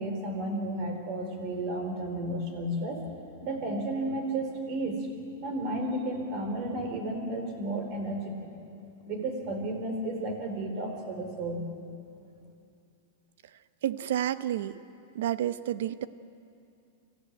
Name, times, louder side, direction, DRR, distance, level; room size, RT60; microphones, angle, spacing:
voice 1, 0.0-3.0 3.4-5.1 5.4-8.5 9.1-11.6, right 1 dB, 40° right, 4 dB, 4.0 m, -32 dB
voice 2, 13.8-14.7 15.1-16.1, right 11 dB, 70° right, 14 dB, 0.8 m, -30 dB
24.0 x 14.5 x 9.4 m, 2.5 s
supercardioid pair, 150°, 0 cm